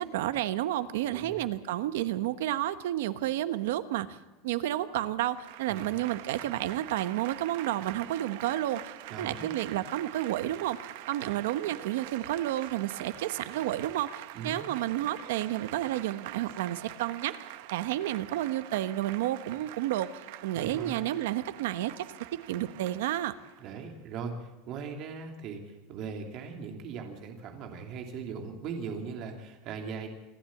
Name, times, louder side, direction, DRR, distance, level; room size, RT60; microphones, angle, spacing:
voice 1, 0.0-4.2 4.4-8.9 9.2-10.8 11.1-17.3 17.7-20.1 20.4-22.1 22.5-23.3, right 13 dB, 80° right, 12 dB, 1.1 m, -31 dB
Applause / Crowd, 5.3-23.8, right 15 dB, 60° right, 0.8 m, -45 dB
voice 2, 9.1-9.6 14.3-14.6 20.5-21.1 23.6-30.1, right 5 dB, 40° right, 3 dB, 2.8 m, -39 dB
26.5 x 11.5 x 8.5 m, 1.1 s
supercardioid pair, 175°, 0 cm